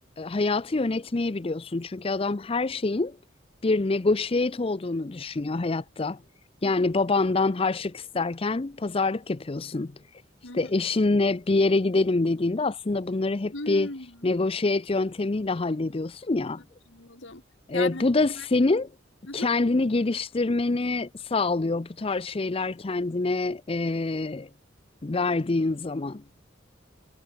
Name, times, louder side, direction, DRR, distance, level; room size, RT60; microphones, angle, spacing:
voice 1, 0.2-3.2 3.6-6.2 6.6-9.9 10.5-13.9 14.2-16.6 17.7-18.9 19.3-24.5 25.0-26.2, left 3 dB, 30° left, 0.5 m, -26 dB
voice 2, 13.5-14.4 16.9-17.4 17.7-18.0 18.4-18.5 19.3-19.5, left 2 dB, 75° left, 3.0 m, -37 dB
head